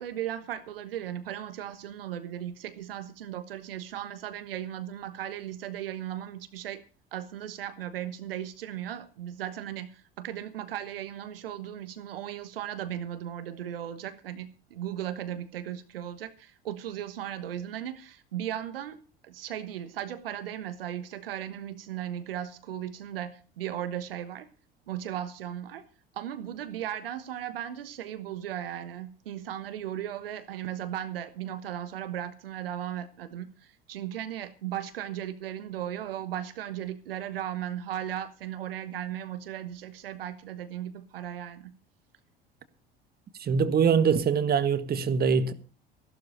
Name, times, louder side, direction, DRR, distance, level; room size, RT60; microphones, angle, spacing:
voice 1, 0.0-6.8 7.1-24.5 24.9-25.8 26.1-41.7, right 11 dB, 70° right, 1.3 m, -36 dB
voice 2, 43.4-45.5, right 6 dB, 30° right, 1.6 m, -23 dB
16.0 x 12.0 x 5.1 m
figure-of-eight pair, 65°, 29 cm